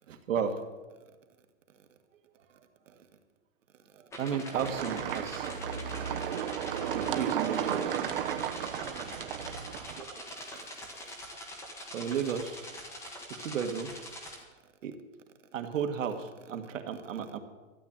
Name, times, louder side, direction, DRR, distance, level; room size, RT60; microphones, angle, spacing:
voice 1, 0.1-0.6 2.9-3.1 3.9-5.8 6.3-6.4 6.9-7.9 10.0-10.7 11.9-12.6 13.4-13.9 14.8-15.0 15.5-17.4, right 7 dB, 65° right, 6 dB, 1.7 m, -34 dB
sound 1, 4.1-14.4, equal, 5° left, 1.2 m, -44 dB
sound 2, 4.5-10.0, right 9 dB, 40° right, 0.9 m, -33 dB
13.0 x 8.0 x 8.8 m, 1.3 s
hypercardioid pair, 165°, 40 cm